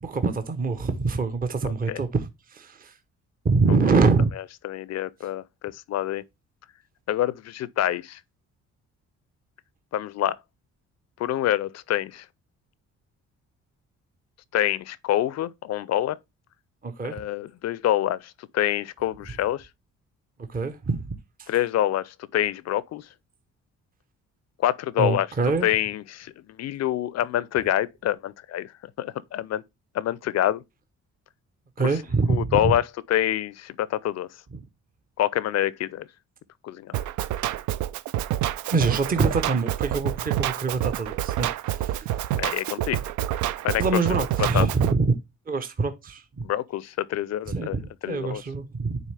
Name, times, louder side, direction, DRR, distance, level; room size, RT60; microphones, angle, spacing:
voice 1, 0.0-2.9 3.4-4.3 16.8-17.2 20.5-21.0 21.4-21.5 25.0-25.7 31.8-32.7 38.7-42.2 43.8-45.1 45.5-46.5 47.5-49.0, right 4 dB, 30° right, 0.7 m, -25 dB
voice 2, 4.6-6.2 7.1-8.2 9.9-10.4 11.2-12.2 14.5-16.2 17.1-19.7 21.5-23.0 24.6-25.3 25.6-26.3 26.6-28.7 29.0-29.6 29.9-30.6 32.3-32.8 33.1-34.3 35.2-36.1 36.6-37.0 42.4-43.0 43.6-43.8 44.4-44.7 46.4-47.8 48.0-48.4, left 12 dB, 60° left, 0.5 m, -26 dB
Drum kit, 36.9-44.9, right 13 dB, 75° right, 0.4 m, -28 dB
9.2 x 3.6 x 3.3 m
cardioid pair, 90°, 30 cm